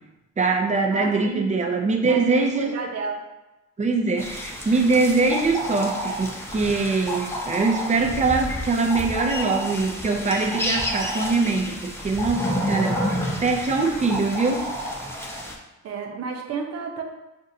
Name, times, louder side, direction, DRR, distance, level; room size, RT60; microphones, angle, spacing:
voice 1, 0.4-2.7 3.8-13.0 13.4-14.7, right 3 dB, 25° right, 3 dB, 0.7 m, -23 dB
voice 2, 0.9-1.5 2.1-3.2 15.8-17.0, right 5 dB, 55° right, 2 dB, 0.7 m, -31 dB
sound 1, 4.2-15.5, equal, 10° left, 0.8 m, -30 dB
6.1 x 2.6 x 2.7 m, 1.0 s
cardioid pair, 90°, 30 cm